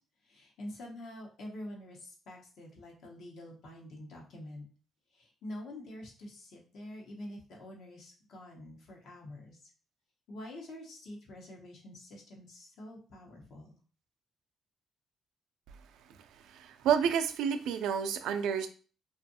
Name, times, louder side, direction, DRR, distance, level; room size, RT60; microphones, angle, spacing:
voice 1, 0.2-4.7 5.1-9.7 10.3-13.8, left 1 dB, 75° left, -1 dB, 0.9 m, -46 dB
voice 2, 16.3-18.7, right 8 dB, 90° right, 8 dB, 0.3 m, -30 dB
2.6 x 2.4 x 2.7 m, 0.39 s
cardioid pair, 90°, 0 cm